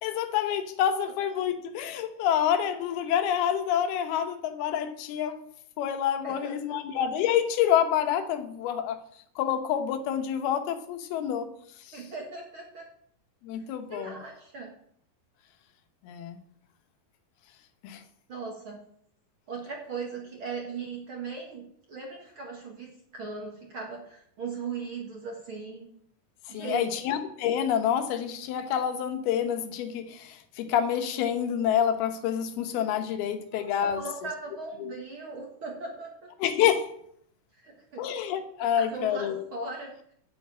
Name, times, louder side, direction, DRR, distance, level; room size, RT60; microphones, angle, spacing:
voice 1, 0.0-5.4 5.8-9.0 9.4-11.5 13.4-14.2 16.0-16.4 17.8-18.0 26.5-34.0 34.8-34.9 36.4-36.9 38.0-39.4, left 9 dB, 85° left, 8 dB, 3.0 m, -27 dB
voice 2, 6.2-6.8 11.9-12.9 13.9-14.7 18.3-18.8 19.5-25.9 26.5-26.9 33.5-36.3 37.5-38.1 38.7-40.1, right 4 dB, 50° right, 0 dB, 1.7 m, -38 dB
9.2 x 7.1 x 8.5 m, 0.67 s
omnidirectional pair, 4.3 m